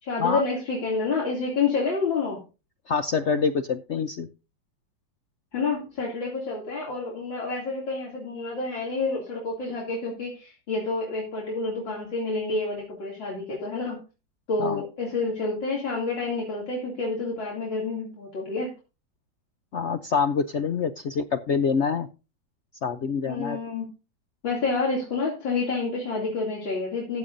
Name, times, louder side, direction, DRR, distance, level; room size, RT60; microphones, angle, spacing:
voice 1, 0.0-2.4 5.5-14.0 14.5-18.7 23.3-23.9 24.4-27.2, left 3 dB, 90° left, -3 dB, 3.6 m, -28 dB
voice 2, 2.9-4.3 14.6-14.8 19.7-22.1 22.8-23.6, left 5 dB, 70° left, 9 dB, 0.6 m, -26 dB
15.0 x 10.0 x 2.7 m, 0.31 s
omnidirectional pair, 2.0 m